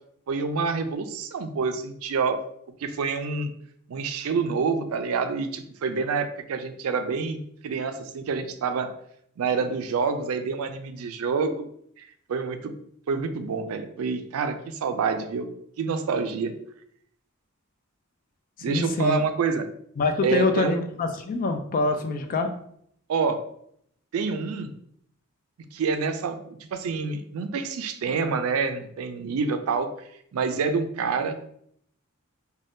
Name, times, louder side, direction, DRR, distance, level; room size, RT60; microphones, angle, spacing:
voice 1, 0.3-2.4 2.8-3.5 3.9-7.4 7.6-8.9 9.4-11.7 12.0-12.7 13.1-15.5 15.8-16.5 18.6-19.6 20.2-20.8 23.1-23.4 24.1-24.7 25.7-29.9 30.3-31.4, right 5 dB, 75° right, 8 dB, 0.4 m, -27 dB
voice 2, 18.7-19.2 20.0-22.5, left 3 dB, 40° left, 6 dB, 0.3 m, -25 dB
2.6 x 2.2 x 3.4 m, 0.68 s
head